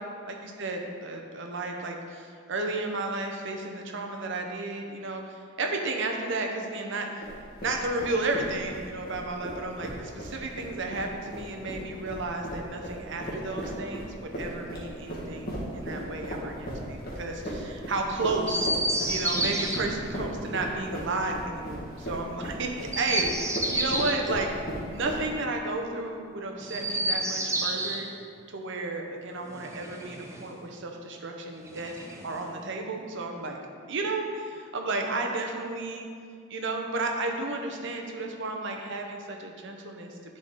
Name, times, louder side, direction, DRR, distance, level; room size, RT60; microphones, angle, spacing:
voice 1, 0.3-7.2 7.6-18.7 19.1-24.6 24.9-28.1 28.5-31.9 32.2-33.6 33.9-36.1 36.5-40.4, right 2 dB, 65° right, 2 dB, 0.8 m, -33 dB
sound 1, 7.2-25.5, equal, 50° left, 1.5 m, -37 dB
Chirp tweet, 18.4-19.8 22.8-24.2 26.6-28.0 29.5-30.5 31.6-32.5, right 1 dB, 15° right, 0.6 m, -30 dB
9.7 x 4.1 x 3.7 m, 2.2 s
head